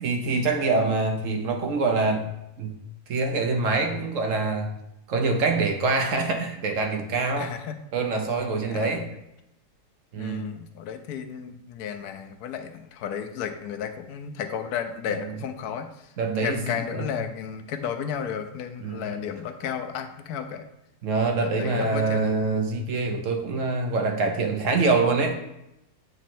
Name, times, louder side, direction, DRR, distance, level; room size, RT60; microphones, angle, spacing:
voice 1, 0.0-2.3 2.6-2.8 3.1-4.7 5.1-7.5 7.9-9.1 10.1-10.5 15.2-15.3 16.2-17.1 18.8-19.2 21.0-25.4, right 3 dB, 60° right, 3 dB, 1.0 m, -25 dB
voice 2, 7.4-7.8 8.7-9.1 10.1-15.9 16.4-20.7 21.4-22.3, left 8 dB, 80° left, 8 dB, 1.1 m, -33 dB
8.0 x 3.0 x 4.3 m, 0.85 s
omnidirectional pair, 1.7 m